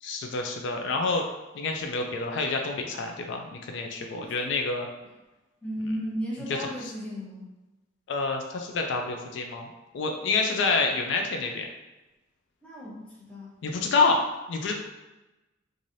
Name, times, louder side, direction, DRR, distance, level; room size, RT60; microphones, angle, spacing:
voice 1, 0.0-1.2 1.5-4.9 6.6-6.9 8.1-11.7 13.6-14.2 14.5-14.7, left 3 dB, 70° left, 3 dB, 0.3 m, -28 dB
voice 2, 4.1-4.4 5.6-7.5 12.6-13.5, equal, 5° left, -7 dB, 0.8 m, -35 dB
3.1 x 2.5 x 2.6 m, 1.1 s
head